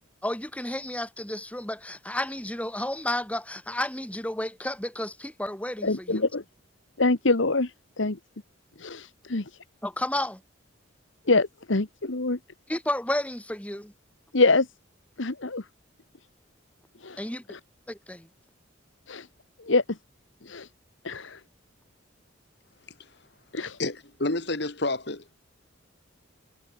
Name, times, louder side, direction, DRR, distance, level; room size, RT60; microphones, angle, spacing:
voice 1, 0.2-6.2 9.8-10.4 12.7-13.9 17.2-17.4 17.9-18.3, left 1 dB, 5° left, 2.4 m, -32 dB
voice 2, 5.8-6.4 7.0-7.7 8.0-8.2 8.8-9.4 11.3-12.4 14.3-14.7 15.2-15.6 17.0-17.2 17.5-17.6 19.1-19.3 19.6-19.8 20.4-20.7 21.0-21.4 23.5-23.8, left 3 dB, 70° left, 1.4 m, -25 dB
voice 3, 23.8-25.2, left 2 dB, 55° left, 2.1 m, -29 dB
head